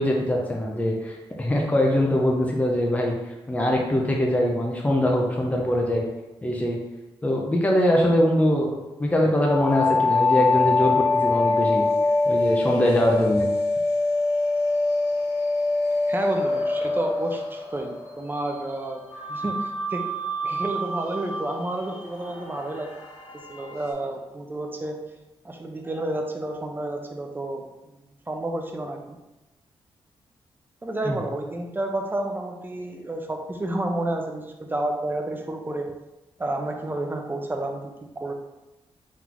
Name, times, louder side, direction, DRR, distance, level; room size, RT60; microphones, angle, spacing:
voice 1, 0.0-3.1 3.5-6.1 6.4-6.8 7.2-11.8 12.3-13.5 31.1-31.2, left 1 dB, 15° left, -1 dB, 0.7 m, -22 dB
sound 1, 9.5-18.2 19.1-23.9, left 3 dB, 85° left, 1.2 m, -25 dB
voice 2, 16.1-19.0 19.3-20.0 20.4-22.9 23.5-25.0 25.4-28.0 28.3-29.2 30.8-35.9 36.4-38.3, right 1 dB, 20° right, 2 dB, 0.7 m, -30 dB
3.9 x 3.7 x 3.0 m, 1.0 s
cardioid pair, 70°, 10 cm